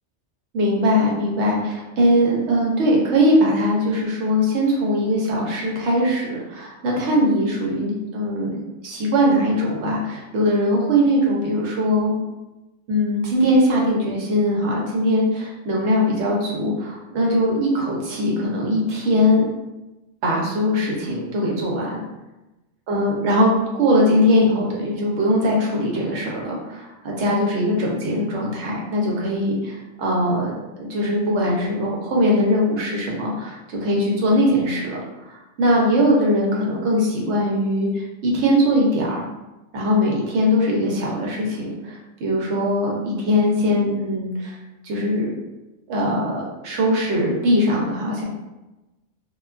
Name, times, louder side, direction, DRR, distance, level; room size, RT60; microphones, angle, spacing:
voice 1, 0.5-8.6 8.8-12.2 12.9-19.5 20.2-22.0 22.9-23.5 23.8-35.0 35.3-39.2 39.7-44.6 44.8-45.3 45.9-48.2, equal, 70° right, -2 dB, 0.9 m, -21 dB
2.4 x 2.2 x 2.3 m, 1.0 s
omnidirectional pair, 1.2 m